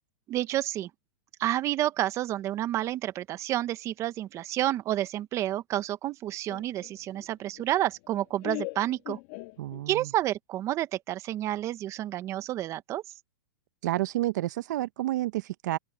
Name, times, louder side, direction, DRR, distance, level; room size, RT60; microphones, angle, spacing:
voice 1, 0.3-0.9 1.4-9.2 9.9-13.0, right 13 dB, 25° right, 1.1 m, -30 dB
Laughter, 6.5-10.1, left 27 dB, 45° left, 1.4 m, -41 dB
voice 2, 9.6-10.1 13.8-15.8, right 15 dB, 60° right, 0.9 m, -30 dB
open air
hypercardioid pair, 140°, 11 cm